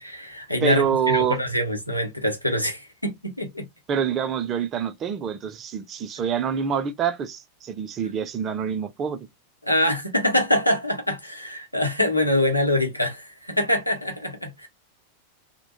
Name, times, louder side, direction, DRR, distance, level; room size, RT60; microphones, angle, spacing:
voice 1, 0.0-3.6 9.6-14.7, left 1 dB, 90° left, 0.7 m, -24 dB
voice 2, 0.6-1.4 3.9-9.3, right 7 dB, 30° right, 0.4 m, -26 dB
2.1 x 2.1 x 2.9 m
figure-of-eight pair, 90°, 0 cm